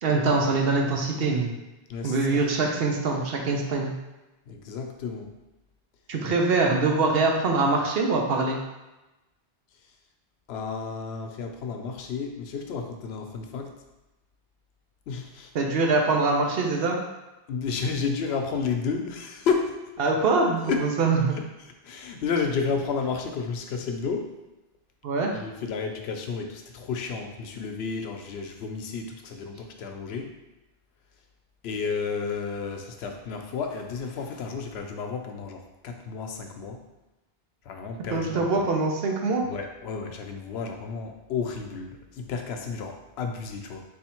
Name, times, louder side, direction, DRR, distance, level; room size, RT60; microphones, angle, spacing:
voice 1, 0.0-1.5 2.0-3.9 6.1-8.6 15.5-17.0 20.0-21.3 25.0-25.3 38.1-39.4, right 3 dB, 70° right, 1 dB, 0.9 m, -23 dB
voice 2, 1.9-2.4 4.5-5.3 10.5-13.8 15.1-15.5 17.5-19.7 20.7-20.9 21.4-21.5 21.8-24.3 25.3-30.3 31.6-36.8 37.7-38.6 39.5-43.8, left 5 dB, 85° left, 4 dB, 0.8 m, -31 dB
3.5 x 2.6 x 4.3 m, 1.0 s
omnidirectional pair, 1.0 m